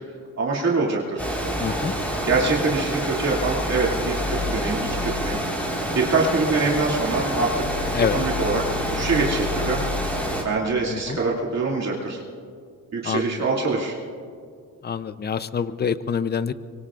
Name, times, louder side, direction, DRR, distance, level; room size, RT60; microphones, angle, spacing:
voice 1, 0.4-1.2 2.2-5.4 5.9-7.9 8.1-9.8 10.4-12.2 12.9-13.9, right 3 dB, 50° right, -3 dB, 2.6 m, -24 dB
Water, 1.2-10.4, equal, 5° left, 4.4 m, -27 dB
voice 2, 1.6-1.9 7.9-8.2 10.9-11.2 13.0-13.4 14.8-16.5, left 7 dB, 30° left, 14 dB, 0.6 m, -26 dB
24.5 x 23.5 x 2.5 m, 2.2 s
cardioid pair, 110°, 35 cm